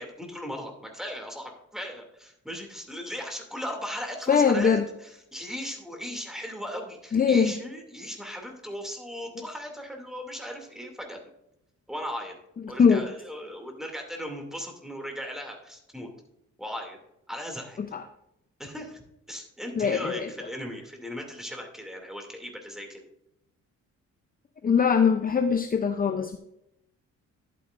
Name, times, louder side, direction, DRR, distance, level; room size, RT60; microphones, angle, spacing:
voice 1, 0.0-11.2 11.9-12.4 12.7-16.1 16.6-17.0 17.3-17.8 18.6-19.0 19.3-23.0, equal, ahead, 2 dB, 2.6 m, -37 dB
voice 2, 4.3-4.8 7.1-7.5 12.8-13.0 17.9-18.0 19.8-20.3 24.6-26.4, left 6 dB, 30° left, 8 dB, 0.7 m, -21 dB
11.0 x 9.1 x 2.6 m, 0.81 s
cardioid pair, 90°, 30 cm